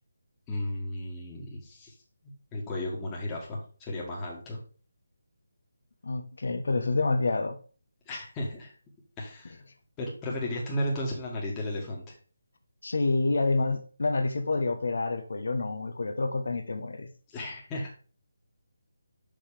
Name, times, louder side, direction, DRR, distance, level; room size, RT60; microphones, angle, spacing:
voice 1, 0.5-1.9 2.5-4.6 8.1-8.7 9.2-9.6 10.0-12.1 17.3-17.9, left 1 dB, 15° left, 1.7 m, -34 dB
voice 2, 6.0-7.6 12.8-17.1, left 3 dB, 65° left, 1.2 m, -28 dB
5.8 x 5.4 x 5.0 m
figure-of-eight pair, 155°, 0 cm